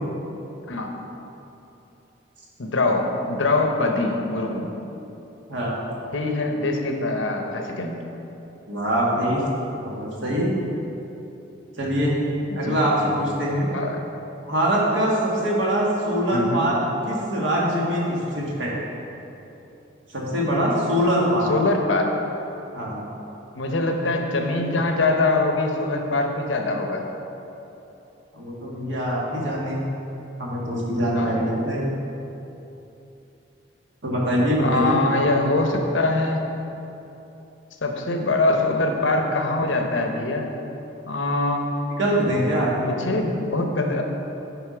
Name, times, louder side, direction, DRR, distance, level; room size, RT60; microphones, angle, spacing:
voice 1, 2.6-4.7 6.1-8.0 12.5-12.8 13.0-13.1 13.7-14.0 16.3-16.7 21.5-22.1 23.5-27.0 31.1-31.4 34.6-36.4 37.8-40.5 41.1-42.0 42.8-44.0, left 2 dB, 80° left, 3 dB, 0.8 m, -23 dB
voice 2, 8.7-9.4 9.8-10.5 11.8-12.2 12.5-13.7 14.4-16.8 17.0-18.7 20.1-21.5 22.7-23.0 28.3-29.8 30.4-31.9 34.0-35.0 42.0-42.7, equal, 80° right, -4 dB, 1.6 m, -23 dB
8.0 x 5.0 x 5.0 m, 3.0 s
head